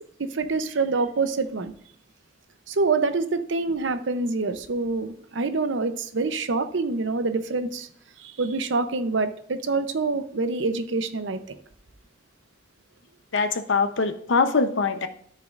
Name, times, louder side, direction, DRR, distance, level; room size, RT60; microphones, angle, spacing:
voice 1, 0.2-1.7 2.7-7.9 8.2-11.6, right 3 dB, 85° right, 9 dB, 0.8 m, -26 dB
voice 2, 13.3-15.1, left 4 dB, 85° left, 9 dB, 0.8 m, -23 dB
13.0 x 6.4 x 2.5 m, 0.64 s
head